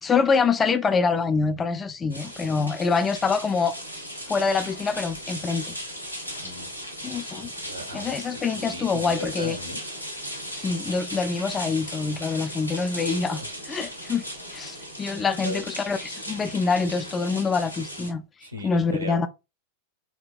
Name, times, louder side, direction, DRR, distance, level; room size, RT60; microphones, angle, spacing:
voice 1, 0.0-3.8 4.3-5.7 7.0-7.5 7.9-9.6 10.6-13.4 13.7-14.3 14.5-18.2 18.6-19.3, left 5 dB, 20° left, 0.3 m, -25 dB
sound 1, 2.1-18.1, equal, 85° left, 0.6 m, -37 dB
voice 2, 6.4-6.7 7.4-9.8 12.6-13.2 15.2-15.6 18.4-19.3, equal, 85° right, 0.6 m, -38 dB
2.8 x 2.2 x 2.3 m
figure-of-eight pair, 90°, 0 cm